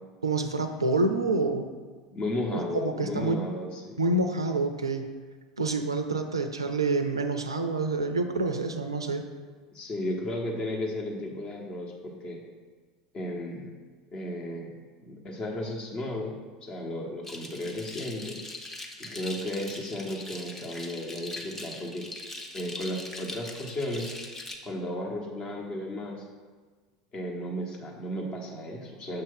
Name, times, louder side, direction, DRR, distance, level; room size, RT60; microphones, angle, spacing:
voice 1, 0.2-1.7 2.5-3.4 4.0-5.1 5.6-9.2, right 2 dB, 85° right, 7 dB, 0.4 m, -27 dB
voice 2, 2.1-4.0 9.7-12.4 13.1-13.7 14.1-16.4 16.6-18.4 19.0-22.1 22.5-24.1 24.6-26.2 27.1-29.2, left 1 dB, 35° left, 0 dB, 1.2 m, -34 dB
sound 1, 17.2-24.6, left 1 dB, 15° left, 0.8 m, -41 dB
6.7 x 2.8 x 5.6 m, 1.5 s
figure-of-eight pair, 75°, 2 cm